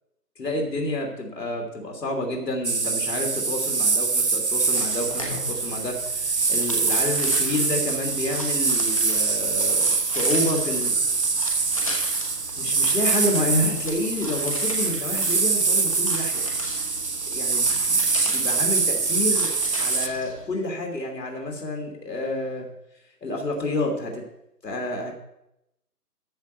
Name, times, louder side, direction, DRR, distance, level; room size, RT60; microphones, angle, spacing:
voice 1, 0.4-11.0 12.6-16.4 17.3-19.5 19.8-22.7 23.2-24.2 24.6-25.1, left 2 dB, 90° left, 1 dB, 3.1 m, -29 dB
sound 1, 2.6-20.1, right 4 dB, 45° right, 0.5 m, -24 dB
sound 2, 4.7-20.4, left 2 dB, 20° left, 1.1 m, -38 dB
13.5 x 4.8 x 8.1 m, 0.85 s
hypercardioid pair, 175°, 48 cm